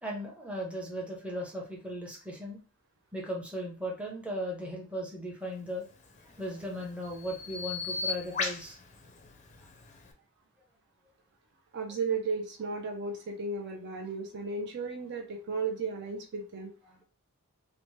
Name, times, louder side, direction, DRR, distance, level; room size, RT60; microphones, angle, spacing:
voice 1, 0.0-2.6 3.1-5.9 6.4-8.8 16.9-17.0, equal, 5° right, -2 dB, 0.7 m, -37 dB
Bird vocalization bird call bird song, 5.9-10.1, left 4 dB, 35° left, 0.5 m, -38 dB
voice 2, 11.7-16.7, right 4 dB, 50° right, 3 dB, 0.4 m, -34 dB
2.9 x 2.1 x 3.1 m, 0.35 s
head